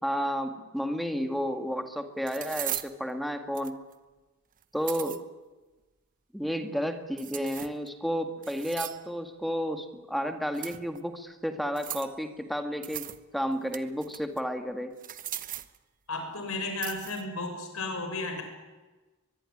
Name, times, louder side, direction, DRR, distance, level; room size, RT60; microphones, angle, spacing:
voice 1, 0.0-3.8 4.7-5.2 6.3-14.9, equal, ahead, 7 dB, 2.0 m, -32 dB
sound 1, 1.3-1.4 2.3-2.9 3.5-3.9 4.6-5.2 7.2-7.9 8.4-9.1 10.5-11.0 11.8-12.2 12.8-13.2 13.5-14.4 15.0-15.8 16.8-17.2, right 12 dB, 40° right, 1.0 m, -38 dB
voice 2, 16.1-18.4, left 3 dB, 75° left, 5 dB, 6.7 m, -33 dB
22.5 x 22.5 x 9.9 m, 1.2 s
head